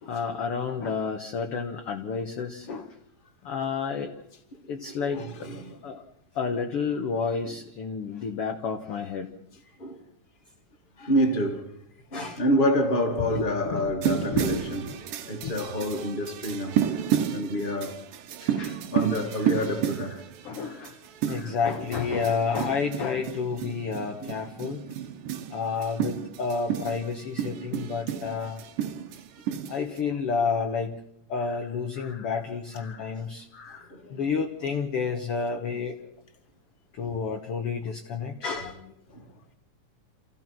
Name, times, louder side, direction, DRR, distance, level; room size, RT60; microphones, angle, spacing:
voice 1, 0.0-2.9 3.5-4.1 4.7-5.2 5.8-6.0 6.4-9.3 12.1-12.4 13.3-15.0 15.4-15.5 18.4-18.8 19.4-19.5 20.4-21.0 21.3-24.8 25.5-28.6 29.7-31.0 31.3-36.0 37.0-38.9, left 5 dB, 60° left, 1.7 m, -30 dB
voice 2, 4.8-5.8 7.5-7.6 9.8-10.0 11.0-11.7 12.1-14.9 15.2-18.0 18.9-20.2 24.2-24.3 33.9-34.2 39.1-39.2, equal, 15° left, 2.1 m, -28 dB
sound 1, 14.0-30.0, right 9 dB, 85° right, 2.6 m, -31 dB
28.0 x 15.5 x 6.0 m
omnidirectional pair, 3.7 m